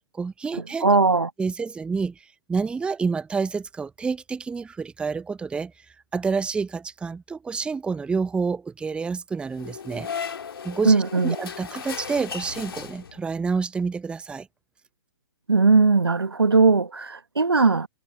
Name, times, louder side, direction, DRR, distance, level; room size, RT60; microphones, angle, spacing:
voice 1, 0.1-0.9 1.4-5.7 6.1-10.3 10.6-14.5, right 5 dB, 10° right, 0.6 m, -28 dB
voice 2, 0.8-1.3 10.8-11.4 15.5-17.9, right 4 dB, 85° right, 1.1 m, -19 dB
sound 1, 9.5-13.4, left 7 dB, 70° left, 2.4 m, -36 dB
figure-of-eight pair, 115°, 13 cm